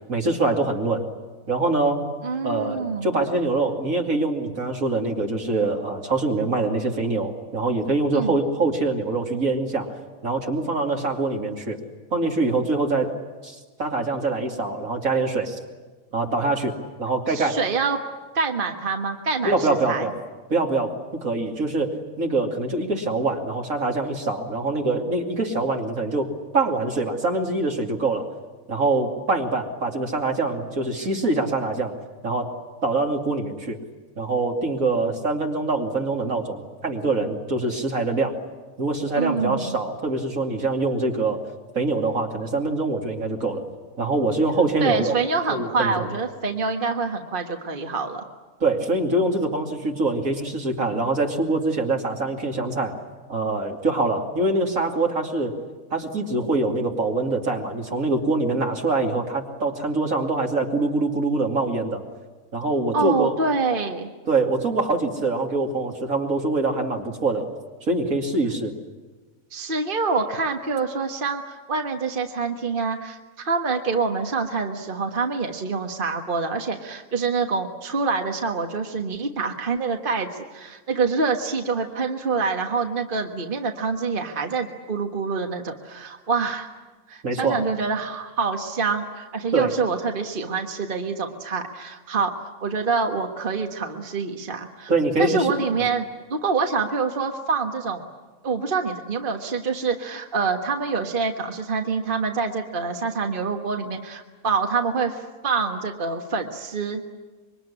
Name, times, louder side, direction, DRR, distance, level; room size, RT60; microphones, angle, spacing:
voice 1, 0.1-1.0 1.5-2.1 2.4-9.9 10.2-11.8 12.1-13.1 13.4-15.6 16.1-16.7 17.0-17.6 19.4-20.2 20.5-28.3 28.7-31.9 32.2-32.6 32.8-33.8 34.2-38.4 38.8-41.4 41.7-43.6 44.0-45.1 45.5-46.1 48.6-53.0 53.3-55.5 55.9-62.0 62.5-63.3 64.3-67.5 67.9-68.7 87.2-87.6 89.5-89.7 94.9-95.5 95.8-95.9, right 3 dB, 70° right, 2 dB, 3.1 m, -24 dB
voice 2, 2.2-3.2 8.1-8.4 17.3-18.0 18.3-20.1 39.2-39.8 44.8-48.2 62.9-64.1 69.5-73.2 73.4-86.7 87.1-92.3 92.6-94.9 95.2-98.1 98.4-107.0, right 4 dB, 35° right, 4 dB, 1.5 m, -26 dB
25.5 x 23.0 x 9.9 m, 1.3 s
omnidirectional pair, 1.5 m